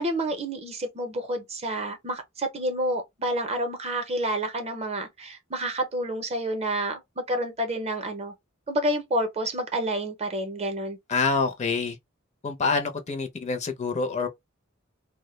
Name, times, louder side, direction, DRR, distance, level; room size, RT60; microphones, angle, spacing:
voice 1, 0.0-8.3 8.7-11.0, right 1 dB, 30° right, 0.6 m, -29 dB
voice 2, 11.1-12.0 12.4-14.3, left 4 dB, 35° left, 0.4 m, -26 dB
2.2 x 2.0 x 3.0 m
head